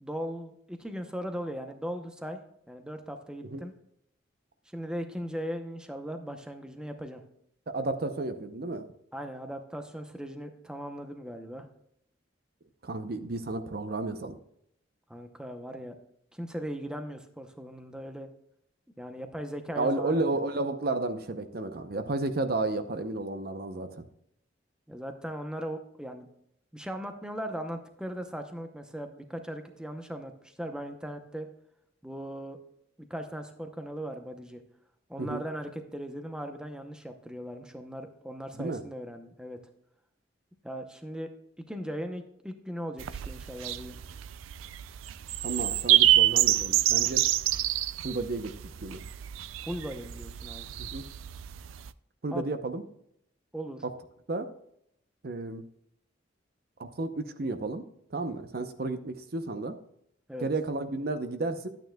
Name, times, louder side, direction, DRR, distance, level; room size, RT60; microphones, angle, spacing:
voice 1, 0.0-2.4 2.7-3.7 4.7-7.2 9.1-11.7 15.1-15.9 16.3-18.3 19.0-20.2 24.9-26.3 26.7-31.5 32.0-32.6 33.1-34.6 35.1-39.6 40.6-41.3 41.7-44.0 49.6-50.7 52.3-52.5 53.5-53.8 60.3-60.5, equal, 5° right, 6 dB, 0.7 m, -38 dB
voice 2, 7.7-8.9 12.8-14.4 19.8-24.1 35.2-35.4 38.5-38.8 45.4-47.2 48.0-49.0 50.8-51.1 52.2-52.8 53.8-53.9 54.3-54.5 55.2-55.7 56.8-57.8 58.1-59.8 60.4-61.7, right 2 dB, 50° right, 9 dB, 0.7 m, -32 dB
sound 1, 43.0-51.9, right 14 dB, 90° right, 0.4 m, -27 dB
11.5 x 9.0 x 2.3 m, 0.72 s
head